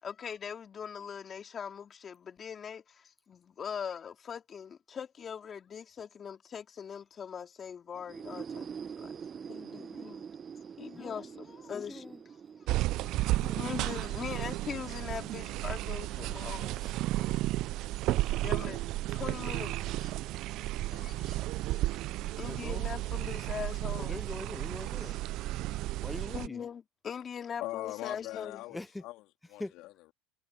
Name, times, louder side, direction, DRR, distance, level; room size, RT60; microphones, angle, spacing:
voice 1, 0.0-8.7 9.0-9.1 9.5-10.2 10.8-12.1 13.0-13.2 13.6-17.5 18.4-19.7 20.0-20.1 21.0-21.4 21.7-22.0 22.4-24.2 25.0-25.2 26.3-28.6, left 7 dB, 35° left, 3.7 m, -41 dB
sound 1, 7.9-15.6, right 6 dB, 35° right, 0.8 m, -46 dB
voice 2, 11.7-12.2 13.4-13.7 22.4-22.8 24.0-25.2 26.0-26.6 28.7-29.0 29.6-29.7, left 2 dB, 10° left, 0.5 m, -42 dB
sound 2, 12.7-26.5, right 17 dB, 60° right, 0.4 m, -33 dB
voice 3, 20.9-21.4 27.6-30.1, left 18 dB, 60° left, 3.5 m, -42 dB
hypercardioid pair, 85°, 0 cm